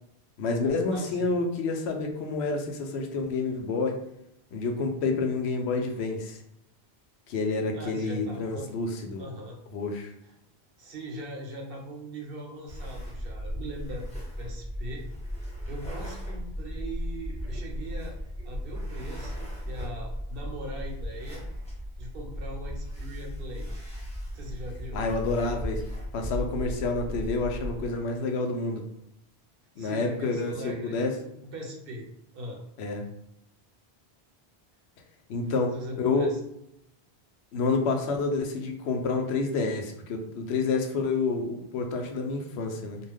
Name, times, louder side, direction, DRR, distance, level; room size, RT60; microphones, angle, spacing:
voice 1, 0.4-3.9 4.5-6.4 7.3-9.2 9.7-10.1 24.9-25.8 26.1-28.8 29.8-31.1 32.8-33.0 35.3-35.7 36.0-36.3 37.5-43.0, left 3 dB, 90° left, 3 dB, 0.8 m, -28 dB
voice 2, 0.9-1.4 7.7-8.7 9.2-9.6 10.2-10.3 10.8-14.1 14.4-15.0 15.7-18.2 18.4-21.4 22.0-23.7 24.3-25.1 29.8-32.1 32.3-32.6 35.4-36.4, right 1 dB, 65° right, -1 dB, 0.9 m, -40 dB
sound 1, 12.7-27.9, equal, 5° left, 0.8 m, -36 dB
2.5 x 2.1 x 3.4 m, 0.78 s
omnidirectional pair, 1.1 m